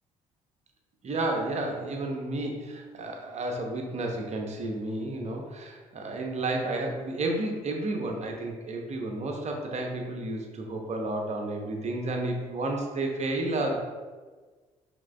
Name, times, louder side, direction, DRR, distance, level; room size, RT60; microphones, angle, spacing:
voice 1, 1.0-13.7, right 2 dB, 40° right, 2 dB, 0.8 m, -31 dB
4.8 x 3.5 x 2.3 m, 1.4 s
hypercardioid pair, 50°, 17 cm